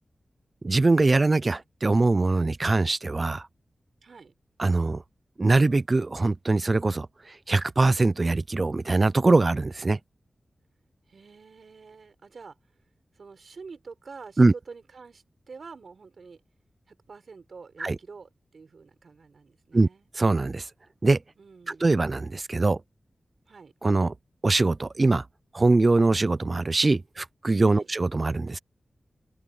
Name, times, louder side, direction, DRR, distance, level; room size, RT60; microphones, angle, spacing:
voice 1, 0.6-3.4 4.6-5.0 5.4-7.1 7.5-10.0 14.4-14.5 17.8-18.0 19.7-19.9 20.2-20.6 21.0-21.2 21.7-22.8 23.8-24.1 24.4-25.2 25.5-28.6, right 3 dB, 40° right, 0.4 m, -22 dB
voice 2, 4.0-4.3 11.1-12.6 13.1-16.4 16.9-20.1 21.4-21.9 23.5-23.7 27.7-27.9, right 4 dB, 70° right, 5.9 m, -47 dB
wide cardioid pair, 70°, 0 cm